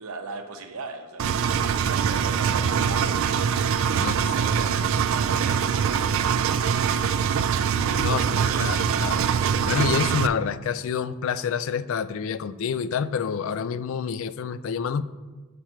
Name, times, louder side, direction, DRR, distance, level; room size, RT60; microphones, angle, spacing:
voice 1, 0.0-3.1 3.9-7.0 7.3-9.1, right 4 dB, 90° right, 6 dB, 0.8 m, -39 dB
Engine, 1.2-10.3, right 7 dB, 65° right, 0.3 m, -23 dB
voice 2, 4.0-4.4 8.0-8.2 8.6-9.2 9.7-15.0, left 6 dB, 65° left, 14 dB, 0.3 m, -28 dB
7.5 x 5.0 x 4.5 m, 1.3 s
head